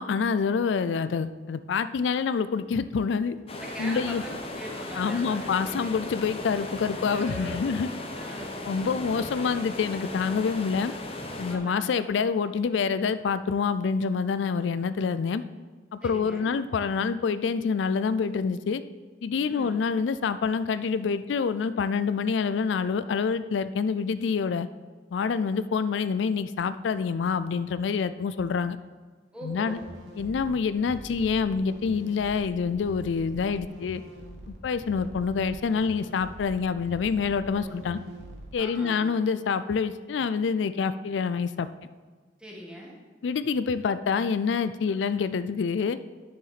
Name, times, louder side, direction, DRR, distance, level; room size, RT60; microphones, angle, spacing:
voice 1, 0.0-3.4 3.8-4.2 5.0-7.9 8.7-10.9 11.4-15.4 15.9-18.8 19.2-24.7 25.1-28.8 29.4-29.8 30.2-34.0 34.6-38.0 38.5-41.7 43.2-46.0, left 5 dB, 90° left, 13 dB, 0.4 m, -27 dB
sound 1, 3.5-11.6, left 1 dB, 30° left, 0.9 m, -37 dB
voice 2, 3.6-5.9 7.1-7.7 8.1-8.6 11.5-12.0 16.0-16.5 19.4-19.8 29.3-29.9 37.5-37.7 38.6-39.1 42.4-42.9, right 1 dB, 5° right, -3 dB, 1.6 m, -41 dB
sound 2, 29.7-38.5, right 1 dB, 75° right, 1.5 m, -44 dB
10.0 x 6.9 x 4.1 m, 1.4 s
head